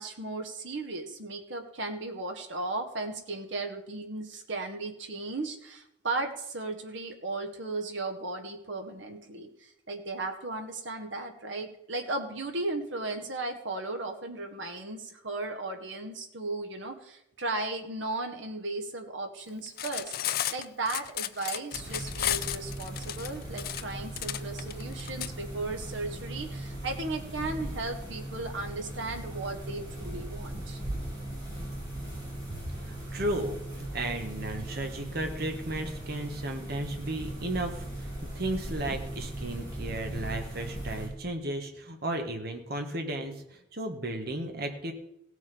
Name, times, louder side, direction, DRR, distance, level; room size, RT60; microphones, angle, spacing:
voice 1, 0.0-20.1 20.5-30.8, right 2 dB, 75° right, 5 dB, 1.7 m, -36 dB
Cutlery silverware, 19.7-25.3, left 12 dB, 50° left, 0.5 m, -33 dB
sound 1, 21.7-41.1, right 1 dB, 20° right, 5.2 m, -38 dB
voice 2, 32.5-44.9, right 1 dB, 55° right, 4 dB, 1.5 m, -34 dB
17.0 x 6.4 x 5.4 m, 0.80 s
head